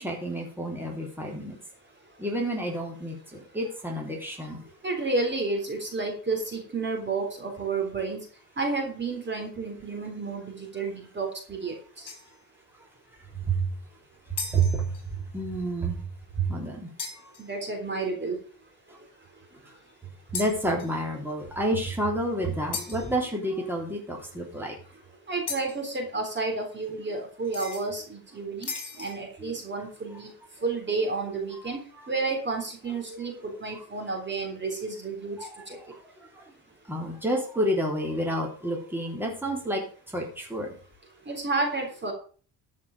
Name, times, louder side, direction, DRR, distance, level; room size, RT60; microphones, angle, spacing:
voice 1, 0.0-1.5 2.2-4.6 13.4-13.7 14.3-16.0 16.4-16.9 18.9-19.0 20.3-24.8 29.0-29.1 29.4-29.5 32.0-32.1 33.1-33.8 35.4-35.9 36.3-36.5 36.9-39.8 40.1-40.7, right 2 dB, 5° right, -1 dB, 3.5 m, -30 dB
voice 2, 4.8-8.3 8.6-12.1 17.4-18.4 25.3-28.7 29.0-30.3 30.6-31.8 32.1-35.4 35.7-35.8 41.3-42.1, right 3 dB, 25° right, 3 dB, 3.6 m, -31 dB
sound 1, 12.1-12.5 14.4-15.1 17.0-17.5 20.3-21.1 22.7-23.2 25.5-25.9 27.4-27.9 28.6-29.3, left 5 dB, 45° left, 4.4 m, -37 dB
13.5 x 6.1 x 6.5 m, 0.41 s
cardioid pair, 130°, 44 cm